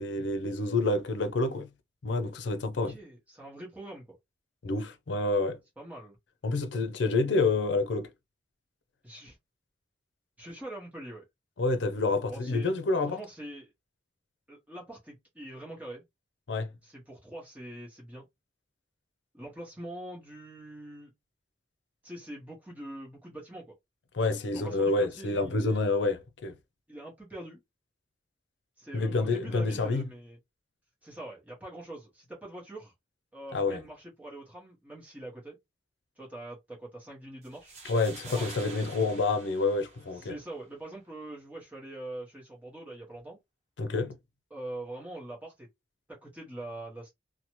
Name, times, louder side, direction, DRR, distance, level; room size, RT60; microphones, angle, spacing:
voice 1, 0.0-1.7 2.0-3.0 4.6-5.6 6.4-8.1 11.6-13.2 16.5-16.7 24.1-26.6 28.9-30.0 33.5-33.8 37.8-40.3 43.8-44.2, left 3 dB, 75° left, 0.5 m, -28 dB
voice 2, 2.8-4.2 5.8-6.2 9.0-9.4 10.4-11.2 12.3-12.7 13.0-13.7 14.5-16.0 16.8-18.2 19.3-21.1 22.0-23.6 24.5-26.0 26.9-27.6 28.8-30.4 31.0-32.9 33.3-35.6 36.2-37.8 38.3-38.5 40.1-43.4 44.5-45.7 46.1-47.1, right 1 dB, 10° right, 1.0 m, -43 dB
sound 1, 37.4-40.4, right 4 dB, 35° right, 1.0 m, -47 dB
2.7 x 2.2 x 3.0 m
head